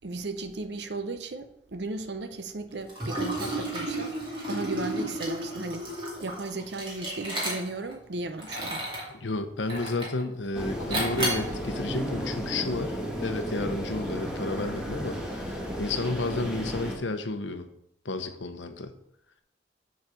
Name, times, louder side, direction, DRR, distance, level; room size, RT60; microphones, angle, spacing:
voice 1, 0.0-4.2 4.5-5.9 6.2-8.9, right 2 dB, 65° right, 0.8 m, -35 dB
Liquid, 2.9-7.9 8.4-9.1 9.7-10.2 10.9-11.5, right 1 dB, 25° right, 2.3 m, -32 dB
voice 2, 9.1-17.7 18.0-18.9, left 2 dB, 75° left, 0.9 m, -32 dB
sound 1, 10.5-17.0, equal, 5° right, 1.3 m, -33 dB
7.5 x 4.1 x 6.5 m
head